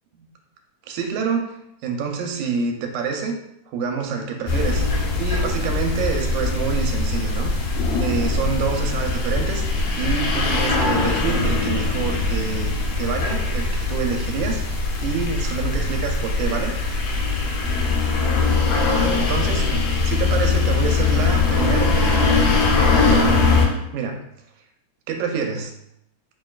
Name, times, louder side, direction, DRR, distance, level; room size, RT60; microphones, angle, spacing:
voice 1, 0.9-3.3 3.7-4.8 5.2-7.7 8.0-9.7 10.0-16.7 18.9-22.5 22.9-23.4 23.9-24.2 25.1-25.7, right 5 dB, 85° right, 3 dB, 1.9 m, -27 dB
sound 1, 4.5-23.7, left 3 dB, 75° left, 1.7 m, -21 dB
5.9 x 2.2 x 2.3 m, 0.77 s
omnidirectional pair, 3.3 m